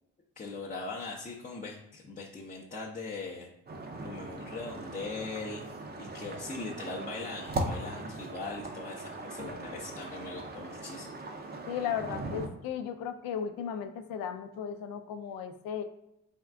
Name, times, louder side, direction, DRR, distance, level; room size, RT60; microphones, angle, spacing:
voice 1, 0.4-3.5 4.0-5.6 6.0-11.1, left 3 dB, 25° left, -4 dB, 0.5 m, -40 dB
sound 1, 3.7-12.5, right 2 dB, 30° right, 0.5 m, -39 dB
voice 2, 11.7-15.8, left 8 dB, 75° left, 8 dB, 0.5 m, -35 dB
3.5 x 2.3 x 3.4 m, 0.85 s
supercardioid pair, 70°, 36 cm